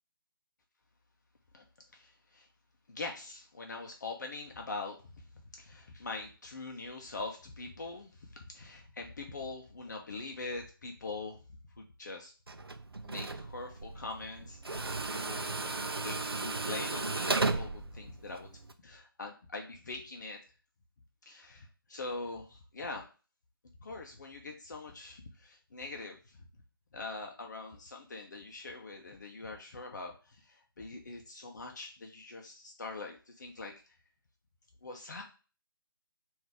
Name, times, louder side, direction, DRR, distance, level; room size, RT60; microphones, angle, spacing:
voice 1, 1.9-2.5 2.9-5.2 5.5-11.4 11.8-12.3 13.0-18.5 18.8-20.4 21.3-23.1 23.8-26.4 26.9-34.0 34.8-35.2, left 3 dB, 50° left, 2 dB, 0.6 m, -43 dB
Tools, 12.5-18.7, right 3 dB, 85° right, 0.5 m, -35 dB
3.9 x 2.6 x 4.7 m, 0.36 s
figure-of-eight pair, 145°, 12 cm